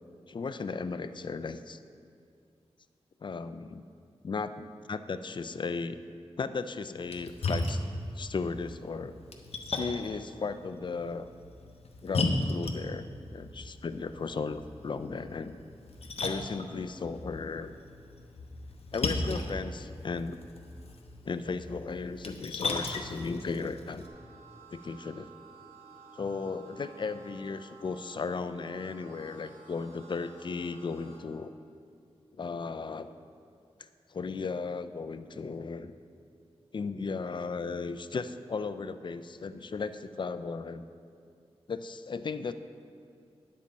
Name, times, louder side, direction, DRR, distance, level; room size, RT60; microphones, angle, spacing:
voice 1, 0.3-1.8 3.2-3.8 4.2-6.0 6.4-7.8 8.2-9.1 9.7-11.3 12.0-13.1 13.3-15.5 16.2-17.7 18.9-20.4 21.2-24.1 24.7-25.3 26.1-31.5 32.4-33.1 34.1-35.9 36.7-40.9 41.7-42.5, left 4 dB, 45° left, 11 dB, 0.4 m, -35 dB
Splash splatter, 7.0-24.1, left 2 dB, 70° left, 0.8 m, -37 dB
sound 1, 24.0-31.2, right 4 dB, 75° right, 1.5 m, -53 dB
10.5 x 7.5 x 4.2 m, 2.3 s
wide cardioid pair, 115°, 11 cm